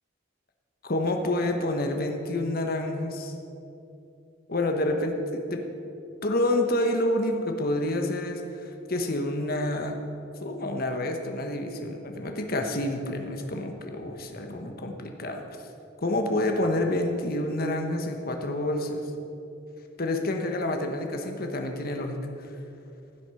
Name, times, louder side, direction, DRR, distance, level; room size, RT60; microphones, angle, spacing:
voice 1, 0.8-3.3 4.5-5.7 6.2-10.0 10.4-15.4 16.0-19.0 20.0-22.2, left 1 dB, 50° left, 4 dB, 1.2 m, -28 dB
15.5 x 7.9 x 5.7 m, 2.8 s
head